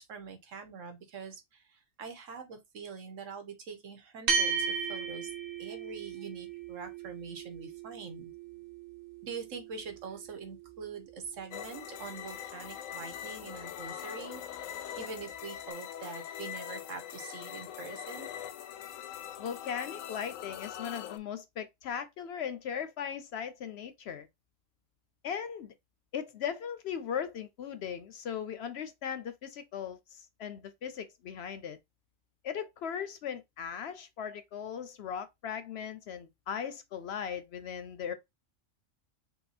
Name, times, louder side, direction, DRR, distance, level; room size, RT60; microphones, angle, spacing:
voice 1, 0.0-5.3 5.6-8.3 9.2-14.4 15.0-18.3, right 5 dB, 75° right, 1.4 m, -44 dB
sound 1, 4.3-12.9, right 5 dB, 45° right, 1.2 m, -37 dB
sound 2, 11.5-21.2, left 10 dB, 90° left, 1.0 m, -42 dB
voice 2, 19.4-24.3 25.2-25.7 26.1-31.8 32.4-38.1, left 8 dB, 65° left, 0.7 m, -38 dB
5.5 x 2.2 x 4.1 m
omnidirectional pair, 1.3 m